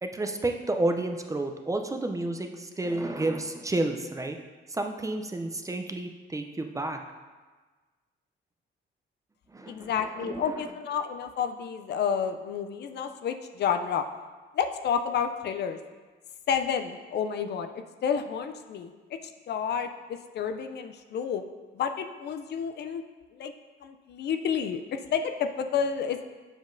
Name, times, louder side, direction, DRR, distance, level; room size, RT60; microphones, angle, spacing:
voice 1, 0.0-4.4 4.7-7.0 9.5-9.9 10.2-10.5, right 2 dB, 15° right, 5 dB, 0.4 m, -30 dB
voice 2, 9.7-14.0 14.5-15.8 16.5-19.2 19.5-21.4 21.7-23.0 23.3-23.5 23.8-26.3, left 7 dB, 60° left, 7 dB, 0.4 m, -30 dB
7.2 x 5.1 x 2.6 m, 1.3 s
cardioid pair, 90°, 20 cm